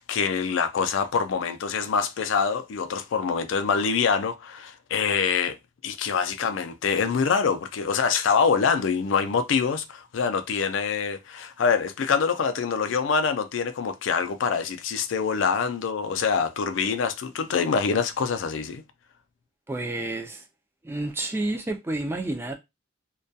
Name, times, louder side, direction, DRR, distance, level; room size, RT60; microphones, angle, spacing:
voice 1, 0.0-5.6 5.8-18.8, left 6 dB, 80° left, 0.4 m, -25 dB
voice 2, 19.7-20.5 20.8-22.5, right 2 dB, 10° right, 0.3 m, -30 dB
2.2 x 2.2 x 2.6 m
head